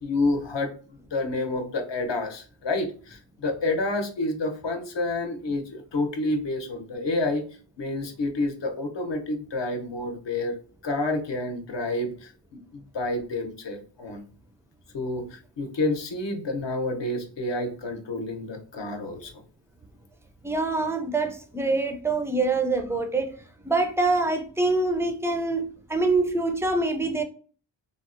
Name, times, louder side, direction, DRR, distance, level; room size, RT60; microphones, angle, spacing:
voice 1, 0.0-7.4 7.8-10.6 10.8-12.3 12.7-14.2 14.9-19.4, left 2 dB, 65° left, 0.7 m, -29 dB
voice 2, 20.4-23.3 23.6-27.2, right 3 dB, 5° right, 0.3 m, -25 dB
3.6 x 2.0 x 2.5 m
wide cardioid pair, 75°, 47 cm